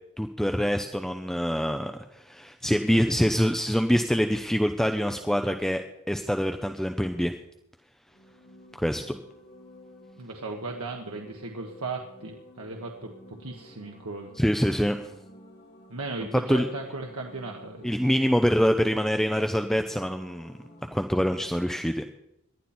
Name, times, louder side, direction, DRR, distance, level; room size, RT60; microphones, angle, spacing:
voice 1, 0.2-7.3 8.8-9.2 14.4-15.1 16.5-16.7 17.8-20.5 20.9-22.0, equal, ahead, 6 dB, 0.7 m, -25 dB
sound 1, 8.1-21.7, left 1 dB, 50° left, 3.8 m, -52 dB
voice 2, 10.2-14.3 15.9-18.1, right 3 dB, 75° right, 1 dB, 1.5 m, -37 dB
19.0 x 12.0 x 4.4 m, 0.82 s
head